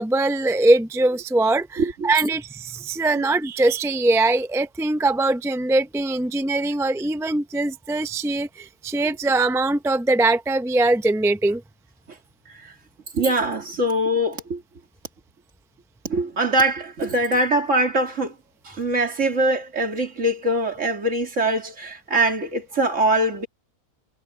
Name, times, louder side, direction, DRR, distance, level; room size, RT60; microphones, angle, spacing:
voice 1, 0.0-11.6, right 2 dB, 5° right, 0.4 m, -22 dB
voice 2, 1.8-2.1 3.1-3.2 12.5-12.7 13.1-14.6 16.0-18.3 18.6-23.5, right 1 dB, 55° right, 3.0 m, -23 dB
omnidirectional pair, 1.5 m